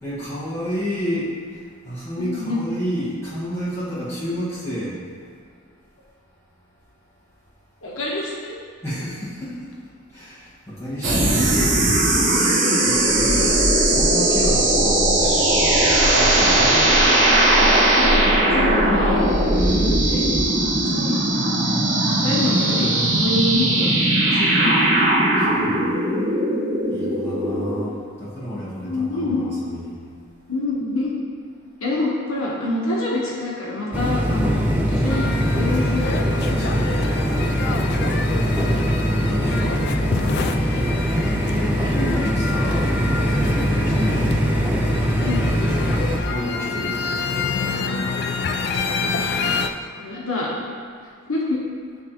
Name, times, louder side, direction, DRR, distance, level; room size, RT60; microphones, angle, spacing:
voice 1, 0.0-5.0 8.8-9.7 10.1-11.8 12.8-17.0 19.5-20.5 25.4-25.9 26.9-30.0 36.5-37.0 38.8-39.9 41.4-42.9 43.2-44.3 46.3-47.5, equal, 15° left, -11 dB, 1.5 m, -30 dB
voice 2, 2.2-2.6 7.8-8.5 17.8-19.3 19.7-20.3 20.9-21.1 22.2-23.9 24.2-24.9 28.8-29.5 30.5-31.1 31.8-36.2 38.1-38.4 42.0-42.2 42.7-42.8 43.8-44.1 45.2-45.5 49.0-49.5 50.0-50.5 51.3-51.6, left 2 dB, 75° left, -4 dB, 1.1 m, -26 dB
sound 1, 11.0-27.8, right 1 dB, 55° right, 1.1 m, -18 dB
sound 2, 33.9-46.2, equal, 10° right, 0.5 m, -22 dB
sound 3, 35.1-49.7, left 4 dB, 50° left, 0.3 m, -28 dB
9.3 x 3.6 x 2.9 m, 2.1 s
head